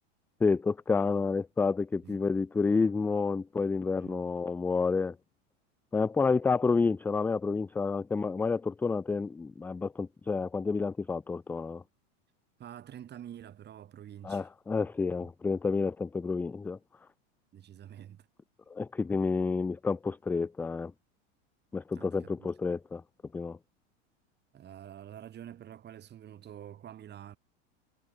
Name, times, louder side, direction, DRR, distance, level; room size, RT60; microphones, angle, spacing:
voice 1, 0.4-5.2 5.9-11.8 14.2-16.8 18.7-20.9 21.7-23.0 23.3-23.6, left 4 dB, 5° left, 0.3 m, -29 dB
voice 2, 4.0-4.3 12.6-14.5 15.2-15.3 17.5-18.3 21.9-22.5 24.5-27.4, right 10 dB, 30° right, 5.4 m, -47 dB
supercardioid pair, 135°, 36 cm